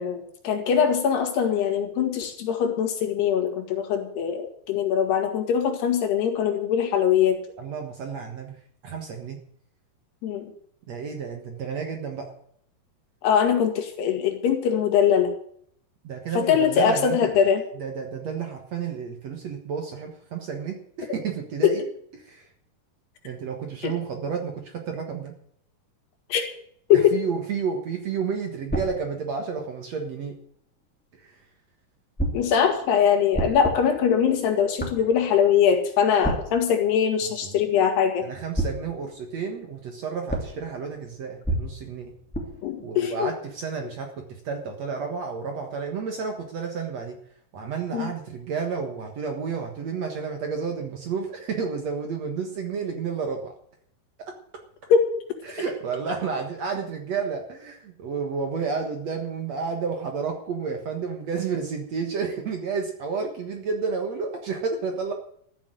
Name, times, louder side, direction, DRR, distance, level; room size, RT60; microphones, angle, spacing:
voice 1, 0.0-7.4 10.2-10.5 13.2-15.3 16.4-17.6 21.6-21.7 23.8-23.9 26.3-26.4 26.9-27.1 32.3-38.2 42.6-43.3 47.9-48.1 54.9-55.0, left 8 dB, 80° left, 5 dB, 4.1 m, -22 dB
voice 2, 7.6-9.4 10.9-12.3 16.0-17.3 17.7-21.8 22.1-22.5 23.2-25.3 26.9-30.4 31.2-31.4 37.2-37.6 38.2-42.2 42.8-47.2 47.5-53.5 55.4-65.1, right 5 dB, 55° right, 3 dB, 2.1 m, -31 dB
sound 1, 28.7-30.6 32.2-38.2 38.5-44.0, right 1 dB, 5° left, 2.0 m, -34 dB
13.5 x 7.1 x 9.1 m, 0.66 s
omnidirectional pair, 4.6 m